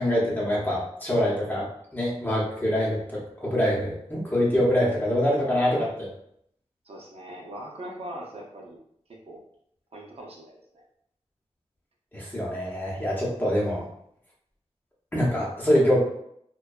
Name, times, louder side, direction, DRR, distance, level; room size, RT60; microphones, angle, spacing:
voice 1, 0.0-6.1 12.1-13.8 15.1-16.0, equal, 15° left, -5 dB, 0.8 m, -25 dB
voice 2, 6.8-8.8 9.2-9.4 9.9-10.8, right 1 dB, 60° right, -2 dB, 0.6 m, -41 dB
2.5 x 2.2 x 2.2 m, 0.71 s
wide cardioid pair, 95°, 12 cm